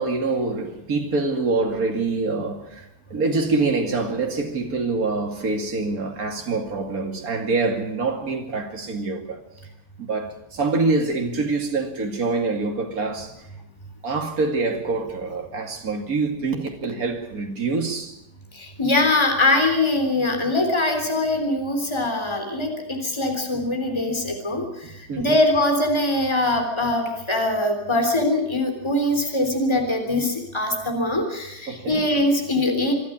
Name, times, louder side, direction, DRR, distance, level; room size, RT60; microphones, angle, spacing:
voice 1, 0.0-9.4 10.0-13.5 14.0-18.2 25.1-25.4 31.7-32.0, right 3 dB, 65° right, 2.9 m, -25 dB
voice 2, 18.6-24.7 25.2-32.9, left 2 dB, 15° left, 3.6 m, -22 dB
26.5 x 12.0 x 9.9 m
omnidirectional pair, 1.7 m